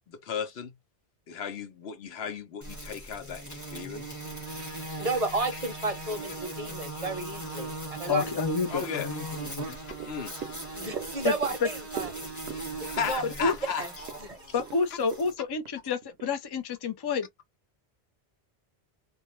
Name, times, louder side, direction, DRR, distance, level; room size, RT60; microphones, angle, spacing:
voice 1, 0.1-0.7 1.3-4.2 8.7-9.4 10.1-10.3 12.5-13.8, left 7 dB, 90° left, 1.0 m, -35 dB
sound 1, 2.6-15.3, right 2 dB, 20° left, 1.0 m, -39 dB
voice 2, 5.0-8.3 10.7-12.1 12.8-13.2 13.8-13.9 14.2-14.5, right 3 dB, 40° right, 0.7 m, -32 dB
voice 3, 8.1-9.7 11.2-11.3 13.4-13.6 14.5-17.3, left 5 dB, 40° left, 0.4 m, -29 dB
sound 2, 9.9-16.3 16.7-16.8, right 8 dB, 80° right, 0.8 m, -43 dB
2.3 x 2.1 x 2.9 m
omnidirectional pair, 1.0 m